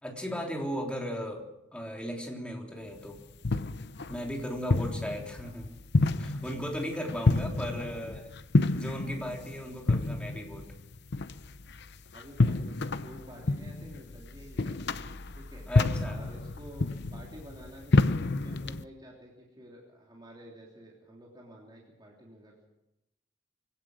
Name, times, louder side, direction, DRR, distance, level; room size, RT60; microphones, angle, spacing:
voice 1, 0.0-1.4 1.7-3.2 4.1-5.7 6.2-8.2 8.7-10.7 15.7-16.2, equal, 5° left, 0 dB, 3.5 m, -36 dB
sound 1, 2.9-18.8, left 2 dB, 60° left, 0.8 m, -29 dB
voice 2, 7.8-8.1 12.1-14.8 15.3-15.7 16.0-22.7, equal, 20° right, -3 dB, 3.3 m, -50 dB
24.5 x 17.0 x 6.4 m, 0.90 s
head